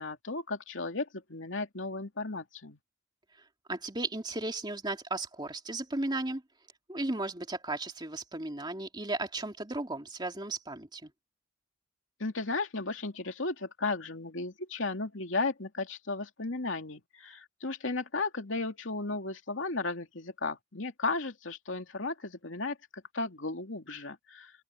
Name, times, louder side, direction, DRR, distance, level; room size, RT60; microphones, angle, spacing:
voice 1, 0.0-2.8 12.2-24.5, left 3 dB, 75° left, 2.6 m, -35 dB
voice 2, 3.7-6.4 6.9-11.1, right 2 dB, 20° right, 2.7 m, -35 dB
open air
head